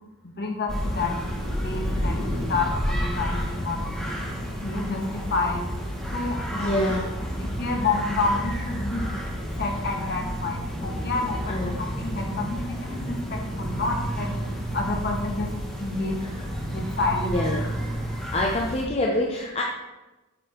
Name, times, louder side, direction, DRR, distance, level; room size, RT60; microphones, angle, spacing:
voice 1, 0.4-1.2 1.6-4.2 4.6-5.6 6.1-7.0 7.4-9.1 9.6-14.3 14.7-15.5 15.8-17.3, left 3 dB, 45° left, 1 dB, 1.6 m, -29 dB
sound 1, 0.7-18.8, equal, 5° left, 1.7 m, -30 dB
voice 2, 6.5-7.1 11.5-11.8 16.2-16.3 17.2-17.7 18.3-19.6, left 1 dB, 30° left, -1 dB, 0.8 m, -26 dB
8.7 x 7.0 x 4.4 m, 1.1 s
head